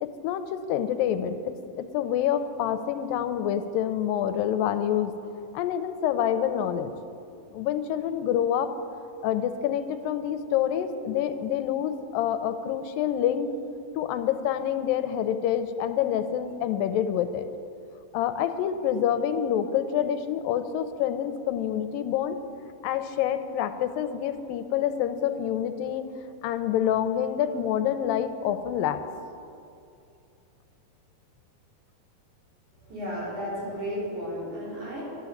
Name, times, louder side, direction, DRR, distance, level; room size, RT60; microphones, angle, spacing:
voice 1, 0.0-5.1 5.5-6.9 7.5-8.7 9.2-13.5 14.0-17.5 18.1-22.4 22.8-26.0 26.4-29.0, left 9 dB, 90° left, 10 dB, 2.3 m, -27 dB
voice 2, 32.8-35.0, equal, 55° right, -7 dB, 5.4 m, -33 dB
12.0 x 10.5 x 7.2 m, 2.5 s
omnidirectional pair, 4.0 m